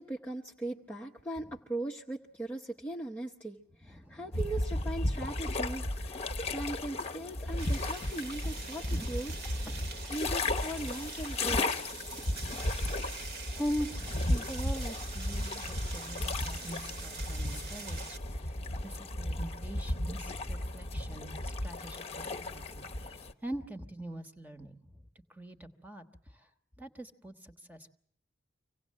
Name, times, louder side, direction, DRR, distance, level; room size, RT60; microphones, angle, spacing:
voice 1, 0.0-9.3 10.0-12.3, right 2 dB, 10° left, -2 dB, 0.9 m, -39 dB
voice 2, 3.9-4.3 6.3-6.5 8.9-9.1 9.7-10.1 12.2-12.7 13.5-18.6 18.8-24.8 25.3-26.0 26.8-27.9, equal, 10° right, 8 dB, 1.3 m, -42 dB
sound 1, 4.3-23.3, left 1 dB, 30° left, 1.0 m, -34 dB
sound 2, 7.6-18.2, right 4 dB, 50° right, 1.7 m, -45 dB
25.5 x 17.5 x 7.5 m, 0.66 s
head